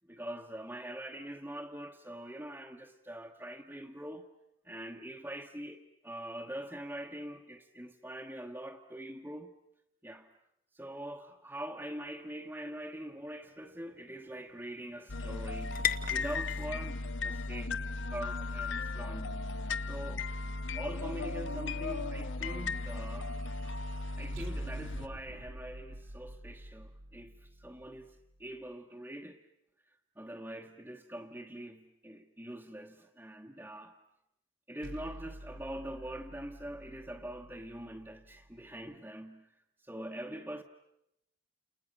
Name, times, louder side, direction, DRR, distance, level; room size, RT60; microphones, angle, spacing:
voice 1, 0.0-4.3 4.6-9.6 10.0-10.3 10.7-19.4 19.8-20.3 20.7-23.4 24.2-29.5 29.9-34.0 34.7-40.6, right 1 dB, 10° right, 1.2 m, -44 dB
sound 1, 12.2-20.1, left 9 dB, 45° left, 1.0 m, -43 dB
sound 2, 15.1-25.1, left 3 dB, 75° left, 1.1 m, -36 dB
sound 3, 21.3-28.6 34.8-38.9, right 1 dB, 90° right, 1.3 m, -50 dB
30.0 x 29.0 x 6.7 m
head